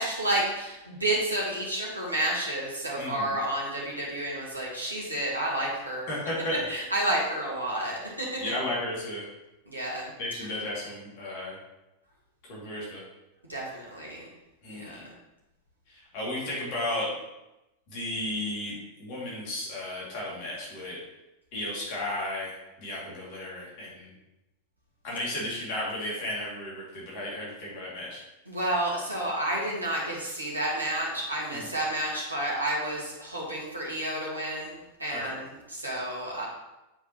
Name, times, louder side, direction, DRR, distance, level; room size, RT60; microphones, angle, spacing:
voice 1, 0.0-6.1 6.7-8.5 9.7-10.1 13.5-14.3 14.8-15.0 28.5-36.5, right 1 dB, 85° right, -5 dB, 1.6 m, -30 dB
voice 2, 3.0-3.4 6.1-6.6 8.4-9.2 10.2-11.6 12.5-13.0 14.6-15.0 15.9-17.1 17.9-21.0 21.5-24.1 25.0-28.2 31.5-31.7 35.1-35.4, left 1 dB, 45° left, -5 dB, 2.3 m, -34 dB
8.6 x 4.8 x 3.0 m, 0.95 s
figure-of-eight pair, 90°, 0 cm